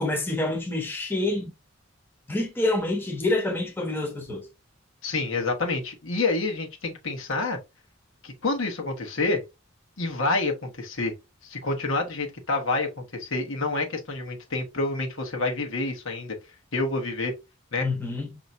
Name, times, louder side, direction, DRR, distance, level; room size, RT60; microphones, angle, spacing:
voice 1, 0.0-1.5 2.3-4.4 17.8-18.3, left 2 dB, 10° left, 1.0 m, -27 dB
voice 2, 5.0-7.6 8.2-9.4 10.0-11.1 11.4-16.3 16.7-17.3 17.7-17.9, left 3 dB, 70° left, 1.2 m, -28 dB
5.5 x 2.9 x 2.5 m
head